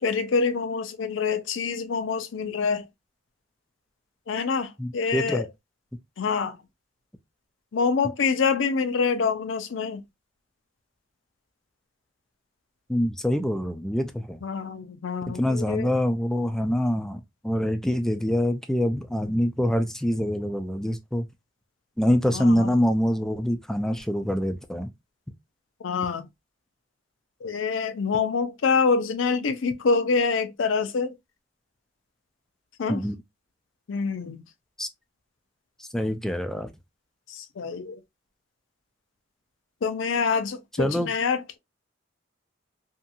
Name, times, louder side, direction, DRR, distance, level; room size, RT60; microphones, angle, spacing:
voice 1, 0.0-2.8 4.3-5.5 6.2-6.6 7.7-10.0 14.4-15.9 22.3-22.7 25.8-26.3 27.4-31.1 32.8-33.0 33.9-34.4 37.3-38.0 39.8-41.6, left 5 dB, 90° left, 0.5 m, -26 dB
voice 2, 4.8-5.5 12.9-14.4 15.3-21.3 22.0-24.9 32.9-33.2 34.8-34.9 35.8-36.7 40.8-41.1, equal, 5° left, 0.3 m, -25 dB
2.8 x 2.5 x 2.2 m
head